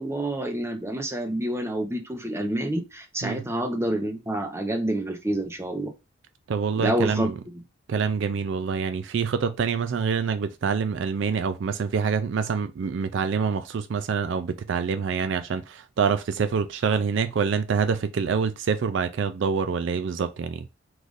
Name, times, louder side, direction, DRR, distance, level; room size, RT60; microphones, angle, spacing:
voice 1, 0.0-5.9 6.8-7.3, right 1 dB, 10° right, 0.7 m, -28 dB
voice 2, 6.5-7.3 7.9-20.7, right 6 dB, 60° right, 0.3 m, -26 dB
4.8 x 2.5 x 3.9 m
head